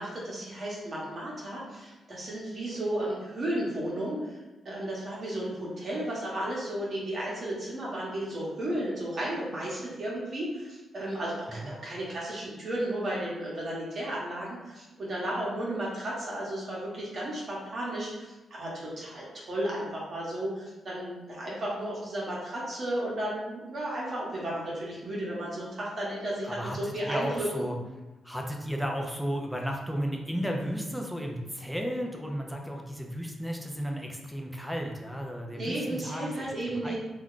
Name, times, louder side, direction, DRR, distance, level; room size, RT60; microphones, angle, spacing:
voice 1, 0.0-4.4 4.6-27.7 35.5-36.9, right 1 dB, 45° right, -5 dB, 0.9 m, -34 dB
voice 2, 26.4-27.7 28.2-36.9, equal, ahead, 1 dB, 0.4 m, -34 dB
2.3 x 2.1 x 3.6 m, 1.1 s
cardioid pair, 100°, 0 cm